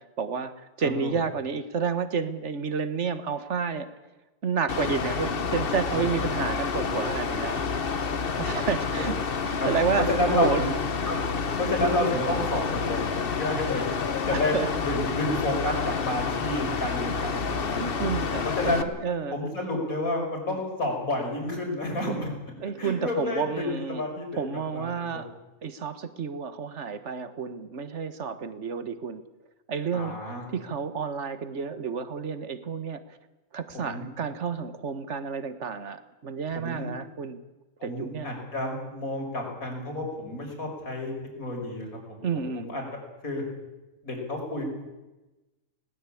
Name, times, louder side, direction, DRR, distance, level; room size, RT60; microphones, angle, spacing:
voice 1, 0.0-3.9 4.4-7.7 8.4-9.1 9.4-10.6 14.3-14.7 17.8-18.7 19.0-19.4 22.0-22.2 22.6-24.0 24.3-25.3 25.6-29.2 29.7-30.1 30.5-33.2 33.5-37.4 37.8-38.3 42.2-42.7, right 6 dB, 55° right, 11 dB, 1.7 m, -30 dB
voice 2, 0.8-1.1 5.9-6.0 8.3-8.4 9.6-9.7 10.1-10.7 11.1-11.2 11.6-13.8 14.3-18.0 18.4-18.9 19.3-22.3 22.8-24.4 24.7-25.2 29.9-30.4 33.8-34.1 36.5-36.9 37.8-41.9 42.3-42.8 43.2-43.4 44.0-44.6, left 1 dB, 85° left, 1 dB, 5.9 m, -30 dB
Mechanical fan, 4.7-18.8, left 5 dB, 45° left, 1.2 m, -29 dB
19.5 x 19.0 x 8.6 m, 1.1 s
omnidirectional pair, 1.4 m